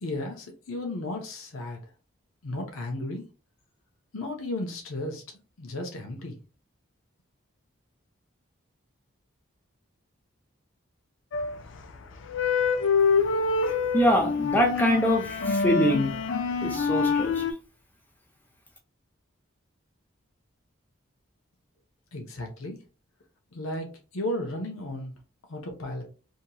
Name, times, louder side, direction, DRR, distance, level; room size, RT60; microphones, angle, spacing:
voice 1, 0.0-1.8 2.4-3.3 4.1-5.2 5.6-6.4 22.1-22.8 23.5-25.1 25.5-26.0, left 1 dB, 85° left, 0.7 m, -34 dB
sound 1, 11.3-11.8 12.2-17.5, left 5 dB, 65° left, 0.4 m, -26 dB
voice 2, 13.9-16.2 16.6-17.4, equal, 10° left, 0.6 m, -24 dB
2.9 x 2.7 x 2.2 m
head